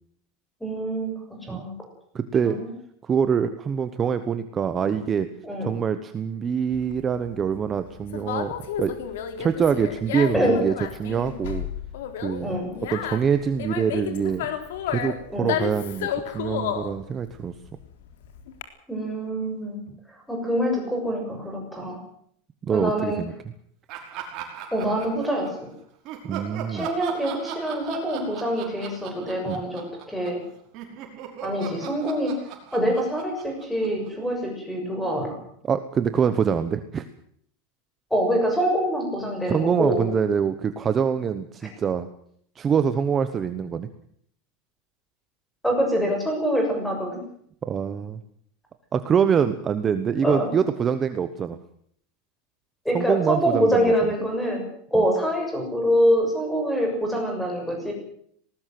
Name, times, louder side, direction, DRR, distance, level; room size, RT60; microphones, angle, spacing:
voice 1, 0.6-1.7 2.4-2.7 5.4-5.7 10.3-10.6 12.4-12.7 15.3-15.5 18.9-19.8 20.3-22.0 22.7-23.2 24.7-25.7 26.7-30.4 31.4-32.3 32.7-35.4 38.1-40.0 45.6-47.2 50.2-50.5 52.8-54.6 54.9-57.9, equal, ahead, 2 dB, 6.8 m, -25 dB
voice 2, 2.1-2.6 3.0-5.3 5.6-8.9 9.4-10.7 11.0-11.7 12.2-12.5 12.8-14.5 14.9-17.5 22.6-23.3 26.2-26.9 29.5-29.6 35.6-37.1 39.5-42.1 42.6-43.9 47.6-48.2 48.9-51.6 52.9-53.9 54.9-55.0, right 7 dB, 20° right, 10 dB, 1.0 m, -25 dB
Conversation, 6.7-18.6, left 9 dB, 75° left, 3.7 m, -32 dB
Laughter, 23.9-25.6 26.0-30.4 30.7-34.3, right 8 dB, 35° right, 5.6 m, -38 dB
19.5 x 19.5 x 7.8 m, 0.65 s
supercardioid pair, 175°, 0 cm